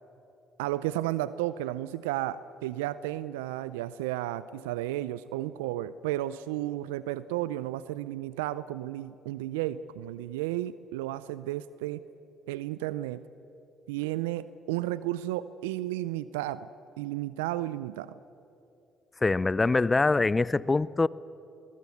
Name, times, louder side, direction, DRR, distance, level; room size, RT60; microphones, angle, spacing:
voice 1, 0.6-12.0 12.5-13.2 13.9-16.7 17.0-18.1, right 14 dB, 85° right, 0.4 m, -33 dB
voice 2, 19.2-21.1, left 3 dB, 25° left, 0.5 m, -24 dB
22.0 x 21.5 x 8.4 m
hypercardioid pair, 55°, 0 cm